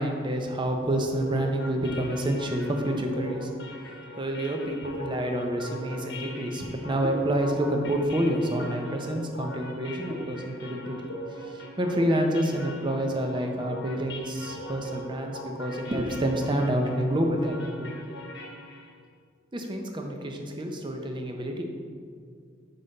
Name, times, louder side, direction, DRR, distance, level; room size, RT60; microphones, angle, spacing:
voice 1, 0.0-3.5 4.2-11.1 11.4-17.9 19.5-21.6, right 1 dB, 25° right, 3 dB, 0.6 m, -28 dB
sound 1, 1.1-19.0, left 1 dB, 55° left, 1.0 m, -41 dB
5.5 x 5.4 x 3.9 m, 2.1 s
head